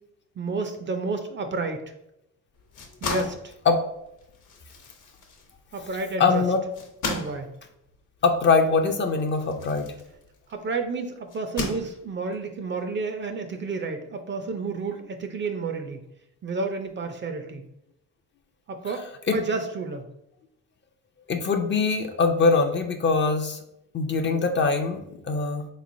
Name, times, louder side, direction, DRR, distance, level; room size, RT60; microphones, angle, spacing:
voice 1, 0.4-1.8 3.0-3.5 5.7-6.4 7.1-7.5 10.5-16.1 16.4-17.6 18.7-19.1 19.3-20.1 24.1-24.5, right 3 dB, 35° right, 6 dB, 0.4 m, -31 dB
sound 1, 2.5-10.6 11.3-12.3, left 3 dB, 55° left, 0.8 m, -36 dB
voice 2, 6.2-6.6 8.2-9.9 19.3-19.4 21.3-23.6 23.9-25.0 25.3-25.7, left 4 dB, 35° left, 5 dB, 0.4 m, -22 dB
3.5 x 3.1 x 2.5 m, 0.83 s
cardioid pair, 90°, 36 cm